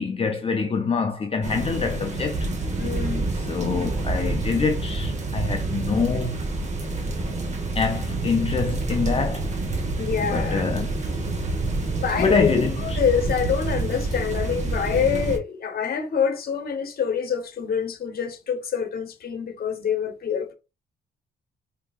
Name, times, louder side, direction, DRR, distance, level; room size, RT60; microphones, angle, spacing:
voice 1, 0.0-2.5 3.5-6.4 7.8-9.5 10.2-10.9 12.2-12.8, left 5 dB, 30° left, 0.5 m, -25 dB
sound 1, 1.4-15.4, right 2 dB, 35° right, 1.0 m, -27 dB
voice 2, 2.8-3.3 10.0-10.6 11.9-20.5, left 7 dB, 50° left, 1.0 m, -26 dB
4.6 x 2.8 x 2.3 m
cardioid pair, 90°, 20 cm